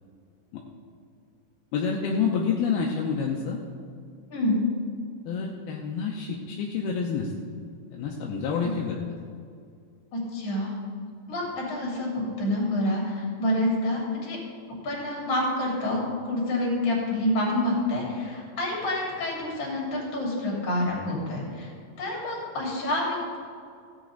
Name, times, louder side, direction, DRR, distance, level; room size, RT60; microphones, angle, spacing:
voice 1, 1.7-3.6 5.3-7.3 7.9-9.0, left 6 dB, 80° left, -1 dB, 2.4 m, -28 dB
voice 2, 10.1-10.7 11.3-14.4 14.8-21.7 22.0-23.4, left 1 dB, 40° left, -3 dB, 3.6 m, -28 dB
15.5 x 8.8 x 3.9 m, 2.3 s
omnidirectional pair, 5.0 m